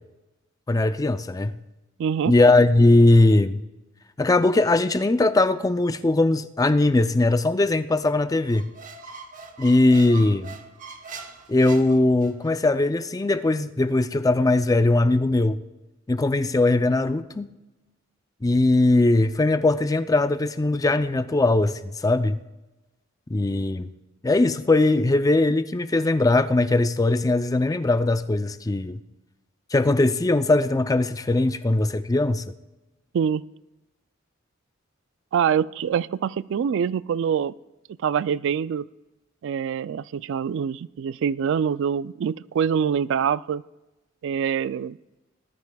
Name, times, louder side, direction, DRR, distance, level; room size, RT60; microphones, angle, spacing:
voice 1, 0.7-1.6 2.3-3.6 4.2-8.7 9.6-10.6 11.5-15.6 16.1-17.5 18.4-22.4 23.3-23.9 24.2-29.0 29.7-32.4, left 2 dB, 20° left, 11 dB, 0.4 m, -20 dB
voice 2, 2.0-2.3 33.1-33.4 35.3-37.5 38.0-38.9 39.4-43.6 44.2-45.0, right 7 dB, 65° right, 18 dB, 0.3 m, -25 dB
Squeak, 8.5-12.5, right 5 dB, 40° right, 1.0 m, -42 dB
19.0 x 13.0 x 2.3 m, 1.0 s
head